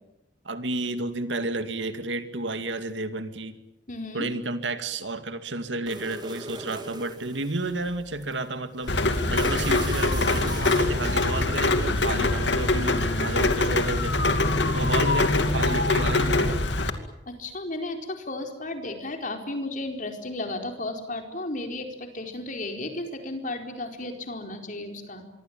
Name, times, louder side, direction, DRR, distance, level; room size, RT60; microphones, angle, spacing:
voice 1, 0.4-3.6 4.1-14.4 14.7-16.7, right 2 dB, 75° right, 9 dB, 2.3 m, -31 dB
voice 2, 3.9-4.3 14.7-14.9 17.3-25.3, left 2 dB, 45° left, 4 dB, 4.5 m, -34 dB
sound 1, 5.9-11.4, right 3 dB, 25° right, 3.3 m, -41 dB
Rain, 8.9-16.9, left 2 dB, 70° left, 2.5 m, -23 dB
26.0 x 23.0 x 9.0 m, 0.88 s
head